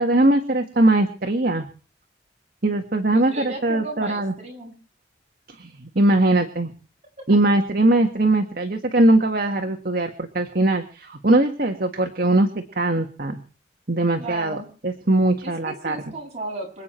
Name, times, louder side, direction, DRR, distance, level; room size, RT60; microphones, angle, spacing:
voice 1, 0.0-1.7 2.6-4.3 5.6-6.7 7.3-13.4 13.9-16.0, right 2 dB, 50° right, 5 dB, 1.8 m, -20 dB
voice 2, 3.1-4.8 14.2-14.7 15.4-16.8, right 2 dB, 35° right, 0 dB, 7.7 m, -34 dB
27.0 x 9.3 x 4.5 m, 0.38 s
head